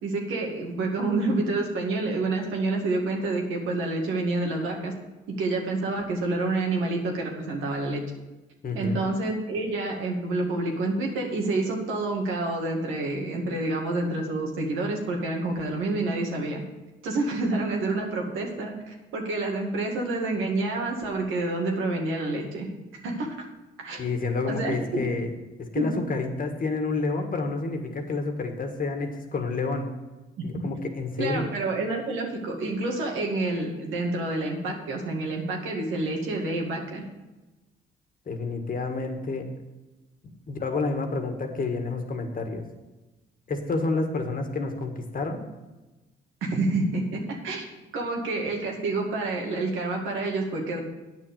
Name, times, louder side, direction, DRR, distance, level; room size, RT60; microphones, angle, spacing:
voice 1, 0.0-4.9 5.4-8.0 8.7-16.6 17.0-22.7 23.0-23.4 23.8-24.0 24.5-25.0 25.8-25.9 30.4-30.5 31.2-37.0 46.4-47.7 47.9-50.8, right 2 dB, 85° right, 0 dB, 2.2 m, -28 dB
voice 2, 8.6-9.0 24.0-25.3 25.6-29.9 30.4-31.5 38.3-39.5 40.5-42.6 43.5-45.4, left 3 dB, 45° left, 5 dB, 1.6 m, -29 dB
9.0 x 6.3 x 6.8 m, 1.1 s
cardioid pair, 75°, 20 cm